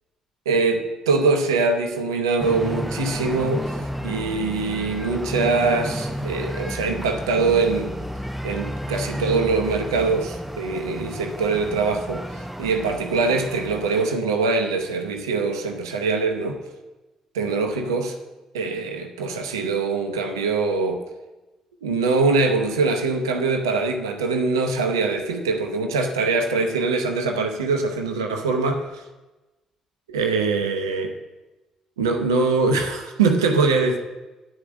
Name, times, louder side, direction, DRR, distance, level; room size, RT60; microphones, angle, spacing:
voice 1, 0.5-7.9 8.4-16.6 17.3-18.2 18.5-21.0 21.8-29.0 30.1-31.1 32.0-34.0, right 4 dB, 85° right, 4 dB, 0.7 m, -23 dB
sound 1, 2.4-14.0, equal, 5° right, 0.8 m, -32 dB
9.7 x 5.0 x 7.3 m, 1.1 s
figure-of-eight pair, 45°, 2 cm